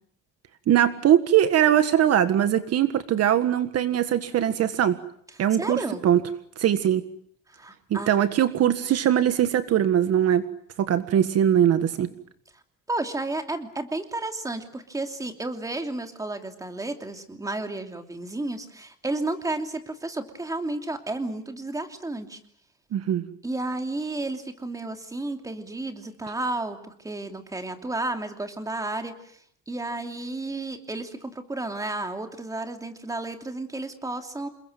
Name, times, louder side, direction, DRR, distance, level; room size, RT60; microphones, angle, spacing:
voice 1, 0.7-5.0 5.4-6.2 6.6-7.0 7.9-10.4 10.8-12.1 22.9-23.3, right 10 dB, 50° right, 11 dB, 1.7 m, -21 dB
voice 2, 5.6-6.0 7.5-8.1 12.9-22.4 23.4-29.4 29.7-34.5, right 2 dB, 10° right, 6 dB, 2.9 m, -32 dB
28.5 x 21.5 x 9.2 m, 0.64 s
cardioid pair, 150°, 31 cm